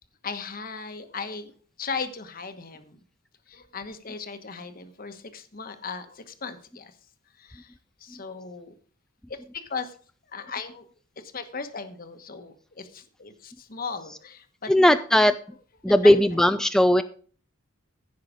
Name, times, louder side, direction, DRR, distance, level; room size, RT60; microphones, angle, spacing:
voice 1, 0.2-1.5 1.8-3.0 3.5-6.9 7.4-7.7 8.0-8.7 9.3-9.9 10.3-10.9 11.2-14.7 16.0-16.1, left 5 dB, 45° left, 9 dB, 1.1 m, -37 dB
voice 2, 14.7-15.3 15.8-17.0, left 1 dB, 5° left, 10 dB, 0.4 m, -18 dB
15.0 x 5.7 x 5.0 m, 0.43 s
head